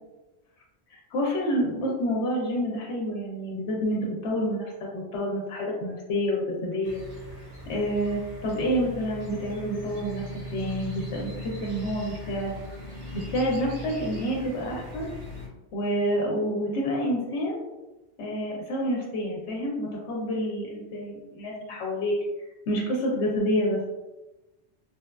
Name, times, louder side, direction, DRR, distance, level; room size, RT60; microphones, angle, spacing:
voice 1, 0.9-7.0 7.7-12.5 13.1-15.1 15.7-17.6 18.2-22.1 22.7-23.8, equal, 90° left, -2 dB, 0.9 m, -28 dB
sound 1, 6.8-15.5, left 1 dB, 65° right, 1.1 m, -39 dB
3.0 x 2.3 x 2.2 m, 1.0 s
omnidirectional pair, 1.1 m